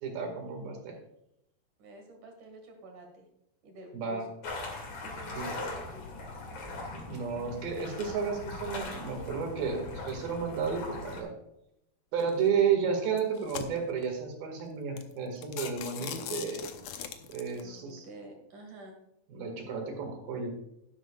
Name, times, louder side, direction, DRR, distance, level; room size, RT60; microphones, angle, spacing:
voice 1, 0.0-1.0 3.9-4.3 5.4-5.5 6.9-11.3 12.1-16.7 17.3-18.1 19.3-20.5, right 6 dB, 80° right, 3 dB, 3.8 m, -32 dB
voice 2, 1.8-3.3 3.6-4.3 5.0-6.3 17.5-19.0, right 1 dB, 60° right, 2 dB, 3.3 m, -48 dB
sound 1, 4.4-11.2, left 2 dB, 55° left, 3.6 m, -40 dB
sound 2, 12.2-12.5 13.1-14.1 14.6-14.7 15.0-15.1 15.4-17.6, left 9 dB, 90° left, 1.5 m, -40 dB
12.0 x 11.5 x 2.4 m, 0.80 s
omnidirectional pair, 4.2 m